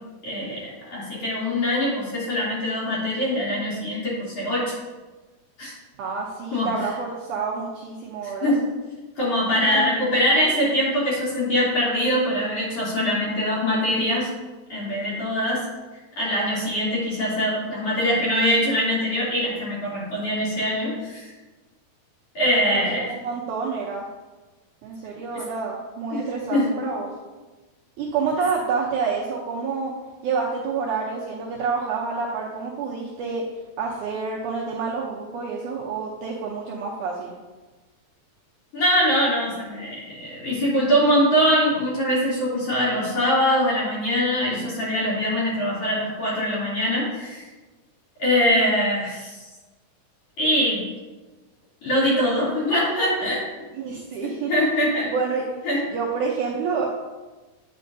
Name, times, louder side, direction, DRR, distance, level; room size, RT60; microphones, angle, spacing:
voice 1, 0.2-0.6 0.9-4.8 5.6-5.7 6.5-6.7 8.4-8.6 9.2-14.3 14.7-15.6 16.2-21.3 22.4-23.1 26.1-26.2 26.5-26.7 38.7-47.4 48.2-49.5 50.4-50.8 51.8-53.4 54.5-55.1 55.6-55.8, equal, 40° left, -8 dB, 3.6 m, -23 dB
voice 2, 6.0-8.5 9.6-9.9 22.7-24.1 24.8-27.1 28.0-29.9 30.2-33.4 33.8-37.3 53.7-54.5 55.1-55.4 55.9-56.9, right 5 dB, 90° right, -3 dB, 1.7 m, -28 dB
9.2 x 7.5 x 2.7 m, 1.2 s
omnidirectional pair, 4.5 m